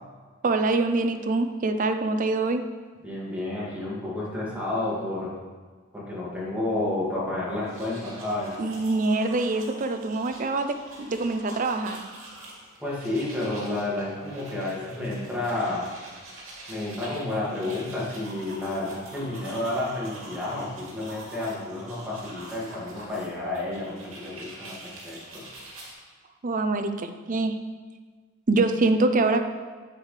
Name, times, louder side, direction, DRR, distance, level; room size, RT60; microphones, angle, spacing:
voice 1, 0.4-2.6 8.6-12.0 26.4-27.5 28.5-29.4, right 3 dB, 40° right, 7 dB, 0.5 m, -24 dB
voice 2, 3.0-5.3 5.9-8.5 12.8-15.9 16.7-25.4, left 2 dB, 5° right, -6 dB, 2.1 m, -30 dB
sound 1, 7.5-25.9, right 1 dB, 75° right, 2.4 m, -45 dB
8.1 x 7.8 x 3.3 m, 1.5 s
head